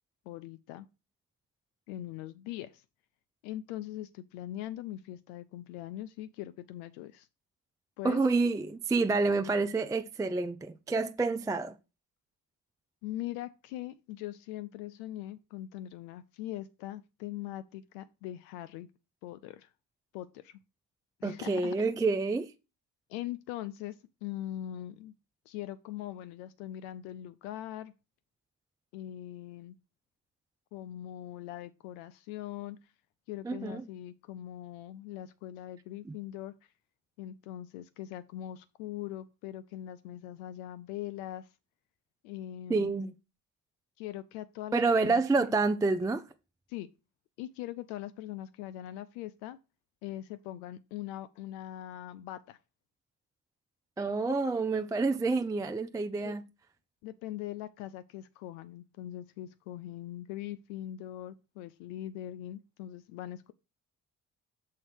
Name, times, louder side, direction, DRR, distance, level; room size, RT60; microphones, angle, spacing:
voice 1, 0.3-0.9 1.9-2.8 3.4-7.3 8.0-8.2 13.0-18.9 19.2-19.7 20.1-20.6 21.2-21.7 23.1-25.1 25.5-27.9 28.9-29.8 30.7-32.9 33.3-36.5 37.2-41.5 42.2-42.9 44.0-45.5 46.7-46.9 47.4-49.6 50.0-52.6 56.2-56.3 57.0-63.5, left 13 dB, 70° left, 0.6 m, -41 dB
voice 2, 8.0-11.8 21.2-22.5 33.4-33.8 42.7-43.1 44.7-46.3 54.0-56.4, right 3 dB, 10° right, 0.4 m, -28 dB
6.5 x 4.2 x 6.2 m
figure-of-eight pair, 45°, 47 cm